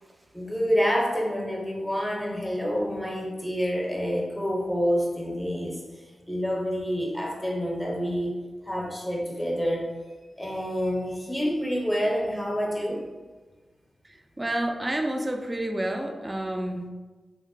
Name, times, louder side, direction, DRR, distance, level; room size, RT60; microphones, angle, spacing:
voice 1, 0.3-5.8 6.3-8.4 8.7-9.9 10.4-13.0, equal, 5° left, -2 dB, 0.7 m, -27 dB
voice 2, 14.4-16.9, right 1 dB, 20° right, 4 dB, 0.4 m, -29 dB
2.9 x 2.1 x 4.1 m, 1.3 s
wide cardioid pair, 85°, 0 cm